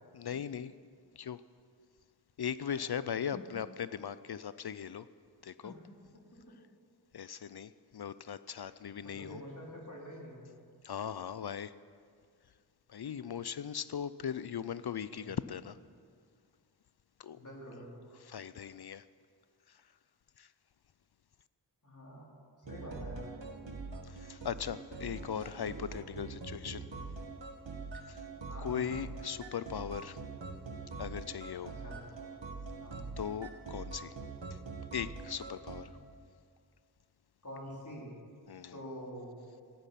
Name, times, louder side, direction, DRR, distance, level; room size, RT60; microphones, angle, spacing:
voice 1, 0.1-0.7 1.2-1.4 2.4-5.1 5.4-5.7 7.1-9.4 10.8-11.7 12.9-15.8 17.2-17.4 18.2-19.0 19.7-19.8 20.4-20.5 24.0-26.9 28.1-28.3 28.6-30.2 31.0-31.7 33.2-34.1 34.5-34.6 34.9-35.9 38.5-38.8, left 8 dB, 60° left, 15 dB, 0.5 m, -39 dB
voice 2, 2.7-3.0 5.6-5.7 6.1-6.2 8.6-8.8 9.0-10.5 15.0-15.3 17.3-18.0 21.8-22.3 22.7-23.3 28.4-29.0 31.6-32.0 32.8-33.0 37.4-38.1 38.7-39.3, equal, 45° left, -3 dB, 4.2 m, -47 dB
sound 1, 22.6-35.8, right 4 dB, 85° right, 1.5 m, -44 dB
16.5 x 12.0 x 5.8 m, 2.1 s
wide cardioid pair, 45°, 43 cm